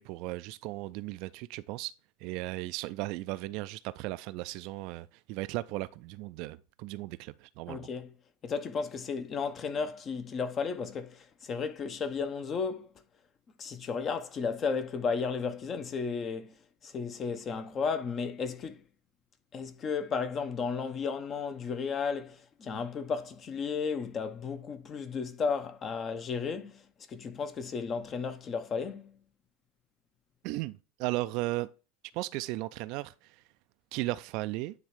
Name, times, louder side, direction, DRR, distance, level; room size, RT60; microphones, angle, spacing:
voice 1, 0.0-1.9 2.2-7.9 30.4-31.7 32.1-33.3 33.9-34.7, right 19 dB, 55° right, 0.4 m, -36 dB
voice 2, 7.7-8.1 8.4-12.9 13.6-16.5 16.8-18.8 19.5-29.2, left 5 dB, 35° left, 0.8 m, -34 dB
9.6 x 3.2 x 4.8 m
figure-of-eight pair, 80°, 0 cm